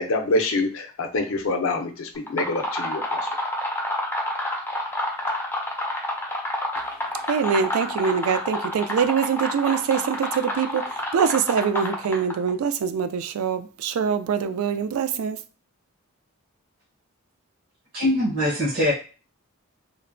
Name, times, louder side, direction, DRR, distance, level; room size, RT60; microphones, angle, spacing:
voice 1, 0.0-3.2, left 2 dB, 65° left, 4 dB, 0.5 m, -26 dB
sound 1, 2.2-12.5, left 1 dB, 10° left, 0.4 m, -29 dB
voice 2, 7.3-10.0 10.6-10.7 11.1-13.1 13.4-13.6 14.0-15.3, right 6 dB, 75° right, 10 dB, 0.3 m, -23 dB
voice 3, 17.9-18.9, left 1 dB, 60° right, -6 dB, 0.9 m, -22 dB
3.0 x 2.1 x 2.5 m, 0.35 s
head